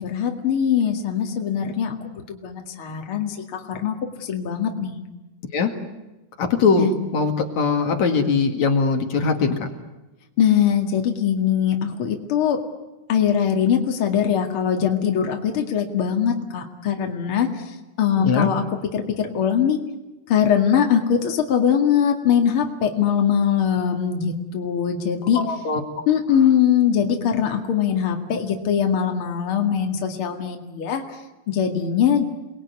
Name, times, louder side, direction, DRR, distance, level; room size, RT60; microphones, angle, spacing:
voice 1, 0.0-5.0 6.8-6.9 10.4-12.6 13.1-19.8 20.3-25.4 26.1-31.0 31.5-32.3, left 8 dB, 45° left, 3 dB, 2.8 m, -22 dB
voice 2, 6.4-6.9 7.1-9.7 18.2-18.5 25.3-25.8, left 5 dB, 65° left, 4 dB, 3.3 m, -21 dB
29.0 x 21.0 x 9.5 m, 1.1 s
omnidirectional pair, 3.5 m